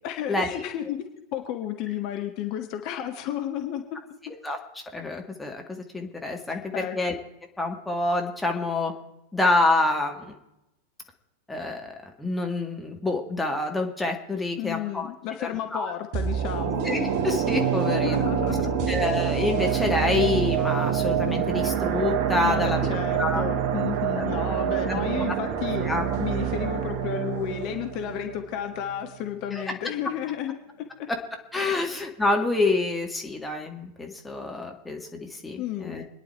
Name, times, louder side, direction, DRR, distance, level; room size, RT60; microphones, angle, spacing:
voice 1, 0.0-1.0 1.3-4.0 6.5-7.0 14.6-16.8 17.9-18.9 22.4-25.9 26.2-31.1 31.7-31.9 35.5-36.0, left 10 dB, 40° left, 5 dB, 1.4 m, -32 dB
voice 2, 4.2-4.6 4.9-7.2 7.6-8.9 9.3-10.3 11.5-15.1 15.4-15.9 16.8-18.2 18.9-22.9 23.2-23.4 24.2-24.3 24.9-25.0 25.8-26.0 29.5-29.6 31.1-31.2 31.5-36.0, left 2 dB, 5° left, 1 dB, 2.0 m, -27 dB
sound 1, 16.1-29.2 29.5-29.6, right 8 dB, 45° right, 1.2 m, -26 dB
25.5 x 10.0 x 4.6 m, 0.90 s
figure-of-eight pair, 90°, 0 cm